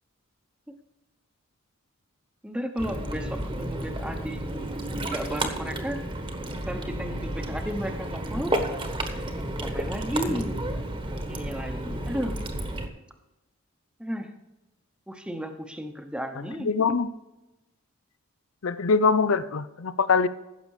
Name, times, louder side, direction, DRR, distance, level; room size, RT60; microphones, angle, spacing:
voice 1, 2.4-4.4 5.0-6.0 6.5-8.5 9.6-10.6 11.2-12.4 14.0-14.3 15.1-16.7, equal, 5° right, 6 dB, 0.9 m, -33 dB
Ocean, 2.8-12.9, right 1 dB, 25° right, 1.2 m, -31 dB
voice 2, 16.4-17.1 18.6-20.3, left 5 dB, 75° left, 15 dB, 0.6 m, -23 dB
15.5 x 6.7 x 4.9 m, 0.99 s
head